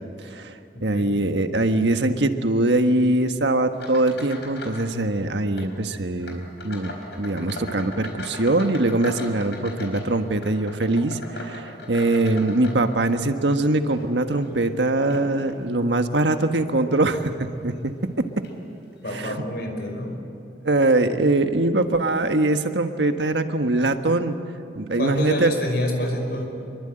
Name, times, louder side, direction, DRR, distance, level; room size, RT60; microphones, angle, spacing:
voice 1, 0.2-17.3 17.6-17.7 19.1-19.4 20.6-24.4 24.7-25.5, right 2 dB, 90° right, 7 dB, 1.5 m, -22 dB
voice 2, 0.7-1.1 19.0-20.2 25.0-26.5, left 1 dB, 65° left, 3 dB, 5.3 m, -27 dB
sound 1, 3.7-4.9 5.2-5.7 6.2-13.3 13.8-15.6 16.2-16.5 17.0-17.2 18.0-18.1 18.4-18.6, left 2 dB, 80° left, 4.7 m, -39 dB
26.5 x 23.0 x 9.0 m, 2.6 s
head